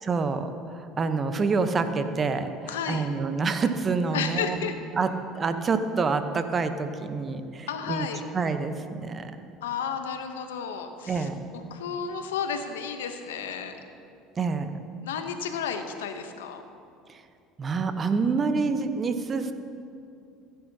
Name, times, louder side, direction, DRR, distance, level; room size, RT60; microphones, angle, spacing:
voice 1, 0.0-4.6 5.0-8.1 8.3-9.3 11.1-11.4 14.4-14.7 17.1-17.2 17.6-19.5, right 4 dB, 35° right, 9 dB, 0.8 m, -27 dB
voice 2, 2.7-3.1 4.1-4.7 7.7-8.2 9.6-11.3 11.7-13.8 15.0-16.6, left 7 dB, 85° left, 8 dB, 0.8 m, -32 dB
15.5 x 9.4 x 2.8 m, 2.5 s
hypercardioid pair, 70°, 0 cm